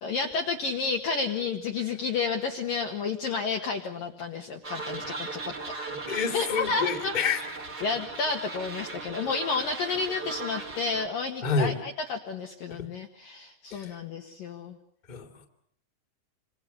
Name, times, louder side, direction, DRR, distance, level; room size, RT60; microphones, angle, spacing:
voice 1, 0.0-5.5 6.3-7.1 7.8-14.8, left 4 dB, 60° left, 2 dB, 2.5 m, -31 dB
sound 1, 4.6-11.1, right 3 dB, 30° right, 2.2 m, -38 dB
voice 2, 6.1-7.4 11.4-11.7 13.7-14.0 15.1-15.5, left 5 dB, 15° left, 3 dB, 1.9 m, -28 dB
28.5 x 25.5 x 6.9 m, 0.67 s
omnidirectional pair, 5.9 m